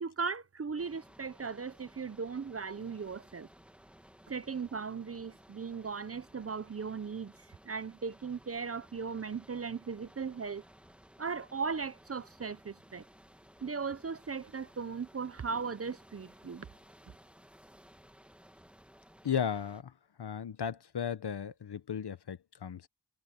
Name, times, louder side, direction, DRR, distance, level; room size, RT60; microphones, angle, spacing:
voice 1, 0.0-3.5 4.3-7.3 7.6-10.6 11.2-13.0 13.6-16.7, right 5 dB, 35° right, 0.6 m, -37 dB
sound 1, 0.8-19.8, equal, 5° right, 1.7 m, -58 dB
voice 2, 19.2-19.9 20.2-22.9, left 8 dB, 65° left, 1.0 m, -35 dB
wide cardioid pair, 120°, 44 cm